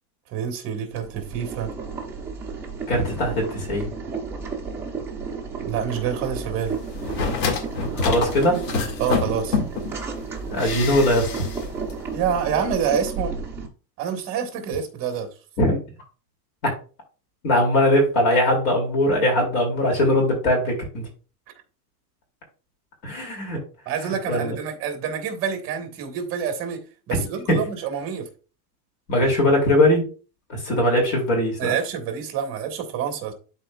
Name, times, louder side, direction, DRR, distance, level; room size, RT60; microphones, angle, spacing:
voice 1, 0.3-1.7 5.6-6.8 9.0-9.6 12.1-13.3 14.0-15.3 23.8-26.8 27.1-28.3 31.6-33.3, right 7 dB, 25° right, 1.5 m, -27 dB
Boiling, 0.9-13.7, right 5 dB, 5° right, 0.6 m, -33 dB
voice 2, 2.9-3.9 7.9-8.7 10.5-11.4 15.6-15.8 16.6-16.7 17.4-21.1 23.0-23.6 24.0-24.6 27.5-27.6 29.1-30.1 30.5-31.7, left 1 dB, 45° left, 2.7 m, -21 dB
sound 1, 6.9-9.9 10.6-11.6 11.9-12.0, left 5 dB, 80° left, 2.2 m, -27 dB
12.0 x 4.2 x 2.3 m
supercardioid pair, 175°, 50 cm